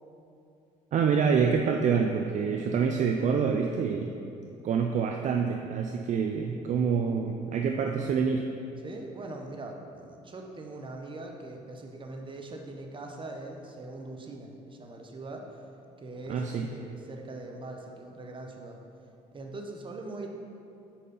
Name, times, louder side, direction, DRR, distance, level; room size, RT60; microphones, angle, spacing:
voice 1, 0.9-4.1 4.6-8.5 16.3-16.7, right 6 dB, 50° right, 3 dB, 0.4 m, -26 dB
voice 2, 8.8-15.5 16.0-18.8 19.3-20.3, right 2 dB, 30° right, 2 dB, 0.8 m, -41 dB
4.6 x 4.3 x 5.4 m, 2.6 s
supercardioid pair, 80°, 16 cm